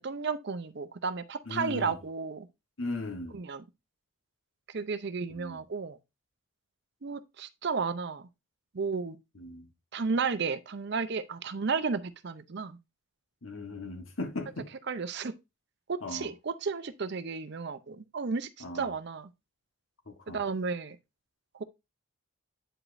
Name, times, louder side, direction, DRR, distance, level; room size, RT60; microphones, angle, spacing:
voice 1, 0.0-2.5 3.3-3.6 4.7-6.0 7.0-8.3 8.7-9.2 9.9-12.8 14.9-15.3 15.9-18.5 18.7-19.3 20.3-21.0 21.5-21.6, right 5 dB, 55° right, 0.6 m, -33 dB
voice 2, 1.5-2.0 2.8-3.4 5.3-5.6 9.3-9.7 13.4-14.7 16.0-16.3 18.6-18.9 20.1-20.4, left 2 dB, 75° left, 1.3 m, -38 dB
8.7 x 4.9 x 2.6 m
head